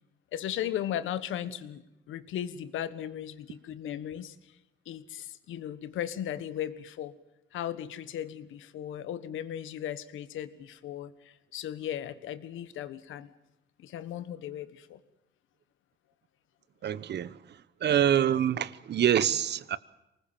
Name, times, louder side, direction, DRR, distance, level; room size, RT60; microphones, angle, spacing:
voice 1, 0.3-4.3 4.8-7.1 7.5-13.3 13.8-15.0, left 10 dB, 80° left, 1.5 m, -36 dB
voice 2, 16.8-17.4 17.8-19.8, right 10 dB, 60° right, 1.0 m, -25 dB
24.5 x 20.0 x 7.5 m
cardioid pair, 90°, 20 cm